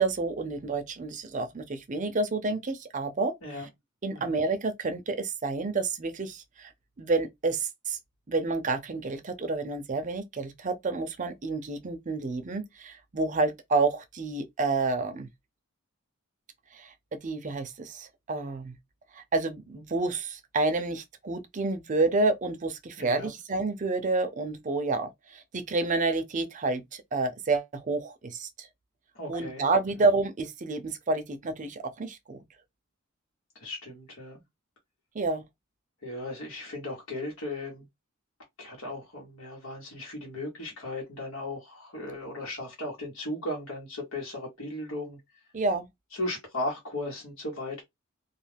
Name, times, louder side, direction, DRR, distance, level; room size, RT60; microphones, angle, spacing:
voice 1, 0.0-3.7 4.0-6.7 7.0-8.0 8.3-15.3 16.7-16.9 17.2-18.8 19.2-28.7 29.3-32.4 35.1-35.4 45.5-45.9, right 3 dB, 40° right, 0.5 m, -29 dB
voice 2, 23.0-23.3 29.1-29.6 33.6-34.4 36.0-37.8 38.6-45.2 46.1-47.8, left 1 dB, 85° left, 1.2 m, -36 dB
2.4 x 2.3 x 3.3 m
head